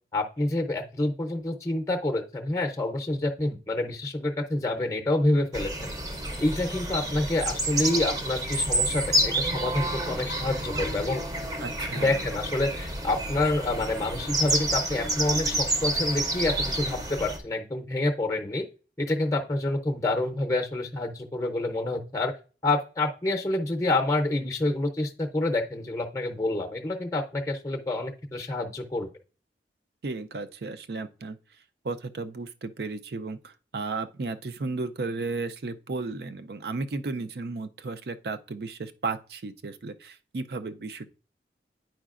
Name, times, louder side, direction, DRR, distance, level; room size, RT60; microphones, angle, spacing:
voice 1, 0.1-5.9 6.4-11.2 12.0-18.6 19.0-22.3 22.6-29.1, left 2 dB, 15° left, 0.6 m, -28 dB
sound 1, 5.5-17.4, right 1 dB, 20° right, 0.6 m, -29 dB
voice 2, 11.6-12.3 30.0-31.4 31.8-41.1, right 3 dB, 65° right, 0.5 m, -34 dB
9.1 x 4.9 x 2.4 m
head